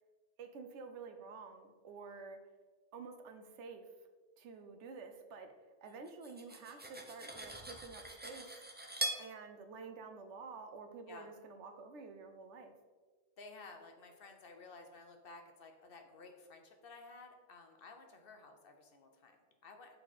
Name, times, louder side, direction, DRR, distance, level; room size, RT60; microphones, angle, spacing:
voice 1, 0.4-2.4 2.9-3.9 4.4-5.5 5.8-8.6 9.2-12.7, right 4 dB, 80° right, 7 dB, 1.0 m, -50 dB
Cutlery silverware, 6.1-9.3, right 1 dB, 15° right, 0.4 m, -42 dB
voice 2, 13.4-20.0, left 3 dB, 55° left, 5 dB, 0.9 m, -54 dB
6.7 x 4.5 x 4.1 m, 1.4 s
omnidirectional pair, 1.2 m